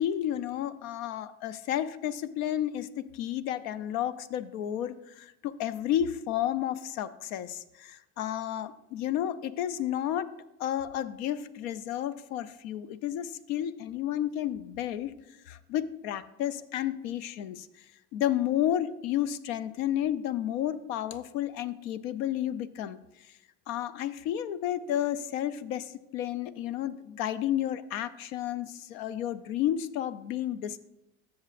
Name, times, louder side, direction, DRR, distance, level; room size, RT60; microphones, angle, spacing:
voice 1, 0.0-10.3 10.6-15.1 15.5-17.7 18.1-23.0 23.7-30.9, left 11 dB, 90° left, 15 dB, 0.6 m, -31 dB
13.5 x 7.2 x 2.5 m, 0.92 s
supercardioid pair, 80°, 41 cm